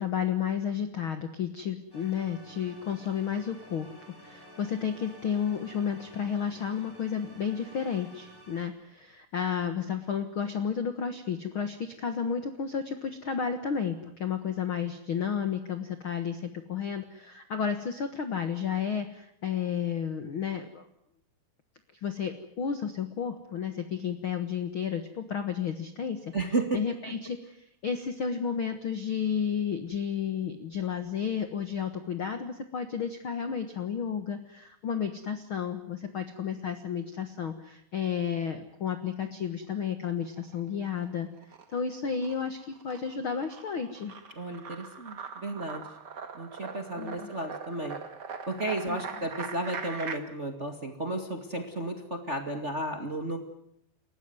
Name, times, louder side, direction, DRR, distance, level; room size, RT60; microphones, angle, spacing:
voice 1, 0.0-3.9 4.2-20.8 22.0-26.3 26.7-41.3 41.7-44.1 47.0-47.3 48.9-49.0, left 7 dB, 55° left, 8 dB, 1.5 m, -32 dB
sound 1, 1.9-8.6, equal, 5° left, 7.6 m, -52 dB
voice 2, 26.3-26.8 44.3-45.8 46.3-48.0 48.5-53.4, right 2 dB, 25° right, 5 dB, 1.8 m, -33 dB
sound 2, 40.2-41.0 41.4-50.2, right 6 dB, 40° right, 1.5 m, -41 dB
29.0 x 15.0 x 9.5 m, 0.75 s
omnidirectional pair, 4.4 m